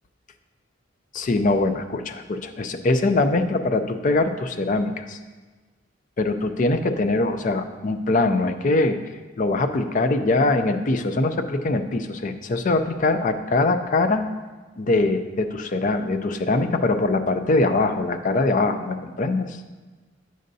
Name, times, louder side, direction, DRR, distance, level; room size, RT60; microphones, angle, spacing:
voice 1, 1.1-5.2 6.2-9.0 9.4-14.3 14.8-19.6, left 2 dB, 45° left, 8 dB, 0.4 m, -22 dB
8.9 x 6.4 x 2.7 m, 1.3 s
head